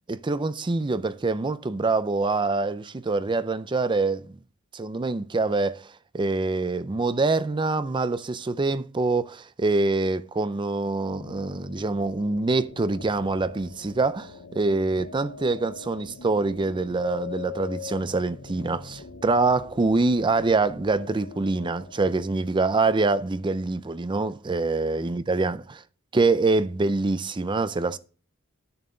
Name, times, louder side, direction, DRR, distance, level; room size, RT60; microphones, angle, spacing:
voice 1, 0.1-4.3 4.7-5.9 6.1-25.6 26.1-28.0, right 3 dB, 20° right, 0.4 m, -25 dB
sound 1, 11.1-22.3, left 6 dB, 80° left, 1.0 m, -42 dB
10.5 x 6.9 x 3.8 m
head